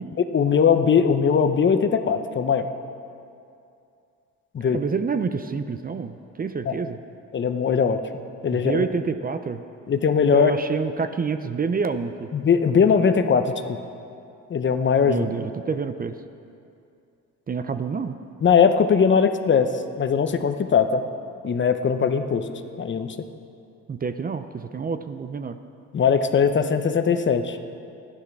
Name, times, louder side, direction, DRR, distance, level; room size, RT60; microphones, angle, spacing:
voice 1, 0.2-2.7 4.5-4.8 6.7-6.8 7.3-8.0 8.4-8.8 9.9-10.5 12.3-13.8 14.5-15.3 18.4-19.7 20.0-21.0 21.4-22.4 22.8-23.1 25.9-27.6, left 6 dB, 40° left, 9 dB, 0.8 m, -20 dB
voice 2, 4.6-7.0 8.5-9.6 10.3-12.3 15.0-16.2 17.5-18.2 23.9-25.6, right 5 dB, 30° right, 10 dB, 0.5 m, -28 dB
11.5 x 9.9 x 6.0 m, 2.5 s
cardioid pair, 90°, 30 cm